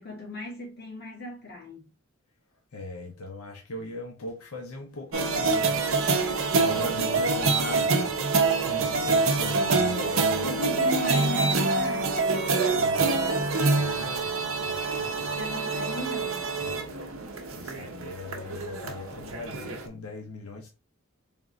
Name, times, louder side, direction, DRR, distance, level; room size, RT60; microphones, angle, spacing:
voice 1, 0.0-1.9 6.0-6.5 10.2-12.5 15.3-16.5, equal, 45° left, 1.9 m, -37 dB
voice 2, 2.7-5.8 6.5-8.1 8.7-10.5 12.8-15.3 16.6-17.1 17.5-20.7, left 2 dB, 90° left, 0.7 m, -39 dB
sound 1, 5.1-19.9, right 3 dB, 70° right, 0.7 m, -26 dB
3.5 x 2.5 x 3.9 m
head